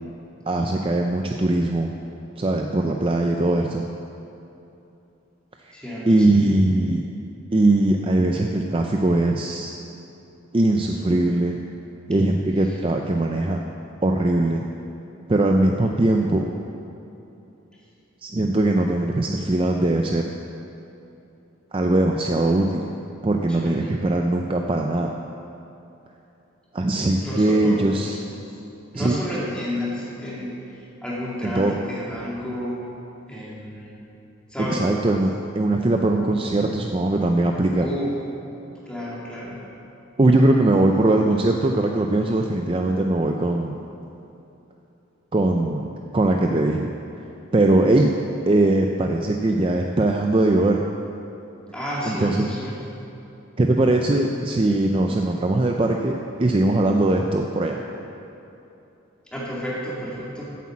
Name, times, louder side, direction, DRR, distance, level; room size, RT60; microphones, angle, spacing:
voice 1, 0.5-1.9 2.4-3.8 5.7-5.8 6.1-7.0 7.5-9.7 10.5-11.6 12.1-13.6 14.0-14.6 15.3-16.5 18.2-20.3 21.7-22.9 23.2-25.1 26.7-28.2 28.9-29.2 31.4-31.8 34.7-37.9 40.2-43.8 45.3-45.9 46.1-46.9 47.5-48.1 48.4-50.8 52.0-52.5 53.6-57.8, right 2 dB, 25° right, 2 dB, 0.4 m, -20 dB
voice 2, 5.7-6.3 6.6-6.7 12.6-12.8 23.5-23.9 27.2-28.0 28.4-28.6 28.9-32.9 33.3-34.0 34.5-34.9 35.6-35.7 37.8-38.2 38.8-39.6 51.7-53.0 59.3-60.5, equal, 5° left, -6 dB, 2.2 m, -31 dB
8.5 x 8.2 x 7.2 m, 2.9 s
head